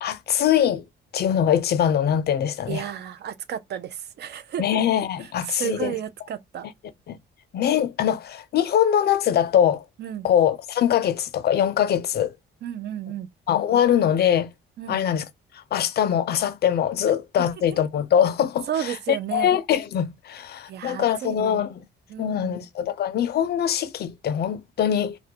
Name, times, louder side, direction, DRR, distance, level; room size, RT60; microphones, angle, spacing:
voice 1, 0.0-0.8 1.1-2.8 4.6-6.0 7.1-7.2 7.5-9.8 10.2-12.3 13.5-14.5 14.9-15.3 15.5-21.8 22.2-25.2, left 9 dB, 55° left, 0.4 m, -22 dB
voice 2, 2.7-4.8 5.5-6.7 10.0-10.3 12.6-13.3 14.8-15.0 18.7-19.5 20.7-21.6 22.1-22.6, right 10 dB, 60° right, 0.4 m, -32 dB
2.3 x 2.1 x 2.7 m
cardioid pair, 90°, 20 cm